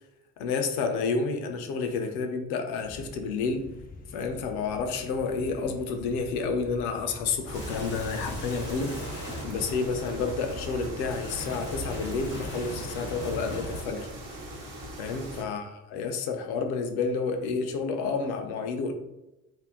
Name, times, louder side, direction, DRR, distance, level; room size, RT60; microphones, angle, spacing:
voice 1, 0.4-3.6 4.1-8.9 9.4-14.1 15.0-18.9, left 4 dB, 60° left, 5 dB, 0.6 m, -30 dB
sound 1, 2.8-15.5, left 3 dB, 20° left, 0.5 m, -46 dB
sound 2, 7.5-13.8, left 1 dB, 90° left, 1.0 m, -38 dB
sound 3, 7.5-15.4, right 2 dB, 45° right, 0.9 m, -42 dB
2.6 x 2.1 x 3.7 m, 0.94 s
figure-of-eight pair, 50°, 45 cm